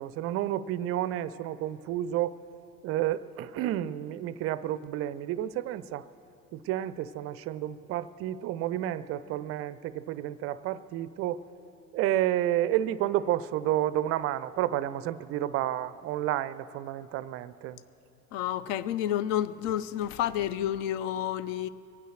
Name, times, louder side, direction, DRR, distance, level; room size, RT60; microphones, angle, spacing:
voice 1, 0.0-2.3 2.8-6.1 6.5-11.4 11.9-17.8, right 13 dB, 35° right, 0.4 m, -30 dB
voice 2, 18.3-21.7, left 11 dB, 55° left, 0.6 m, -30 dB
22.5 x 9.3 x 6.3 m
figure-of-eight pair, 70°, 46 cm